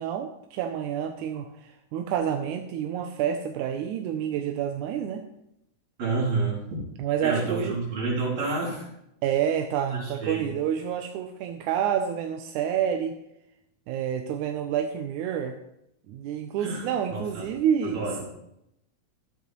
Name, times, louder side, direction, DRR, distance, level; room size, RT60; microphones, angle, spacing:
voice 1, 0.0-5.3 7.0-7.8 9.2-13.2 13.9-15.6 16.1-18.1, right 9 dB, 90° right, 5 dB, 2.1 m, -28 dB
voice 2, 6.0-6.8 7.2-8.9 9.9-10.5 16.6-17.5 17.9-18.2, right 3 dB, 65° right, -4 dB, 4.0 m, -29 dB
12.0 x 10.0 x 3.0 m, 0.83 s
omnidirectional pair, 3.4 m